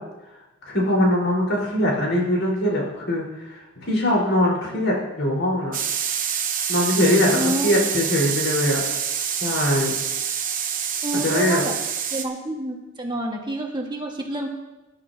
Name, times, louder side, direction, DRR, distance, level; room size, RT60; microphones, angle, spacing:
voice 1, 0.7-5.7 6.7-8.9 9.4-9.9 11.1-11.6, left 1 dB, 85° left, -3 dB, 4.5 m, -22 dB
sound 1, 5.7-12.2, right 8 dB, 45° right, 1.2 m, -26 dB
voice 2, 7.3-7.7 11.0-11.7 12.1-14.5, right 1 dB, 25° right, 0 dB, 1.6 m, -28 dB
20.0 x 11.0 x 2.8 m, 1.0 s
head